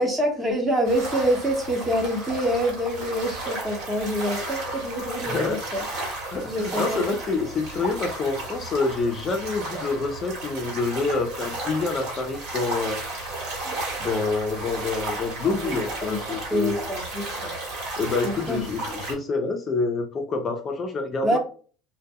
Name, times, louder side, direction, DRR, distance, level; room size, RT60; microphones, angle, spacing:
voice 1, 0.0-5.8 6.4-7.1 7.5-7.6 15.4-16.2 16.5-17.5 18.2-18.6 21.2-21.4, equal, 15° right, 2 dB, 0.7 m, -26 dB
sound 1, 0.8-19.1, right 2 dB, 65° right, 1.1 m, -33 dB
voice 2, 5.2-5.6 6.3-13.0 13.6-16.7 18.0-21.4, left 4 dB, 30° left, 4 dB, 0.4 m, -27 dB
2.1 x 2.1 x 3.4 m, 0.40 s
supercardioid pair, 120°, 0 cm